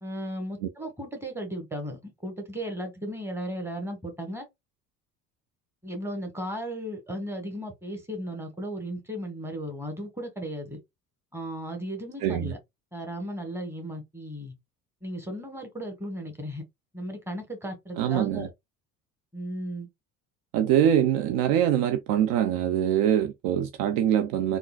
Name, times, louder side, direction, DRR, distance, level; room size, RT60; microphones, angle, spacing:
voice 1, 0.0-4.5 5.8-10.8 11.3-12.6 12.9-14.5 15.0-16.6 16.9-18.5 19.3-19.9, equal, 5° right, 1.4 m, -35 dB
voice 2, 12.2-12.5 18.0-18.5 20.5-24.6, right 10 dB, 50° right, 0.5 m, -24 dB
3.6 x 2.5 x 2.4 m
figure-of-eight pair, 60°, 43 cm